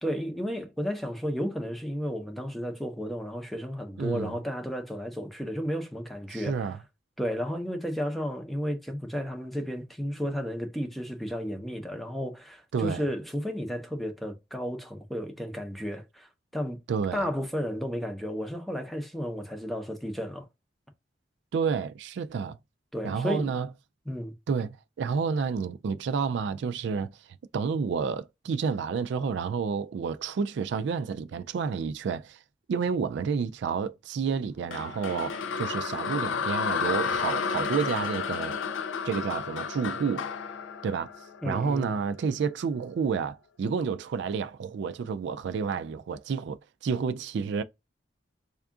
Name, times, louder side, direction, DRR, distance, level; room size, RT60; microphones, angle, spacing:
voice 1, 0.0-6.7 7.2-16.8 17.1-20.5 22.9-23.5 24.1-24.3 41.4-42.0, equal, ahead, 0.6 m, -33 dB
voice 2, 4.0-4.3 6.3-6.8 12.7-13.0 16.9-17.3 21.5-22.6 23.0-23.7 24.5-27.1 27.5-32.4 32.7-38.5 39.0-40.3 40.8-41.1 41.4-47.6, right 5 dB, 70° right, 0.3 m, -30 dB
sound 1, 34.7-41.9, left 6 dB, 85° left, 0.4 m, -31 dB
3.5 x 2.4 x 3.6 m
head